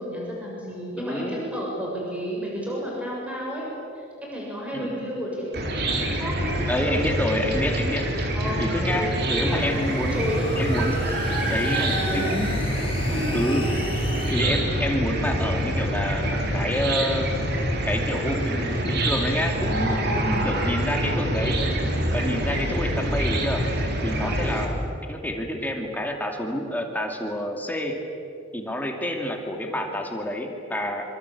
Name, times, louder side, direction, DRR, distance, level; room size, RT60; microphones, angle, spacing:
voice 1, 0.0-3.6 3.9-7.0 8.3-8.6 8.9-9.8 10.1-10.7 11.7-12.3 13.0-13.3 24.2-24.5, equal, 5° right, -4 dB, 7.2 m, -32 dB
voice 2, 1.0-1.4 4.7-4.9 6.7-8.1 8.6-10.3 10.6-11.1 11.5-12.6 13.3-13.7 14.3-17.3 17.8-21.6 22.1-23.6 24.0-24.8 25.1-28.0 28.5-31.0, left 1 dB, 10° left, 2 dB, 2.6 m, -28 dB
Chicken rooster / Cricket, 5.5-24.6, right 1 dB, 55° right, 4.0 m, -26 dB
sound 1, 8.9-14.3, left 3 dB, 30° left, 4.7 m, -38 dB
26.5 x 25.5 x 8.6 m, 2.8 s
head